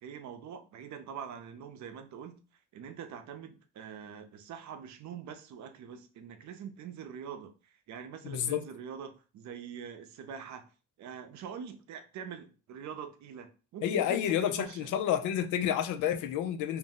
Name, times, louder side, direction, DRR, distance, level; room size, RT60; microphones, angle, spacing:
voice 1, 0.0-2.4 2.7-10.7 11.0-14.9, right 7 dB, 70° right, 0.6 m, -44 dB
voice 2, 8.2-8.6 13.8-16.8, left 10 dB, 80° left, 0.5 m, -30 dB
2.6 x 2.0 x 3.6 m
cardioid pair, 90°, 30 cm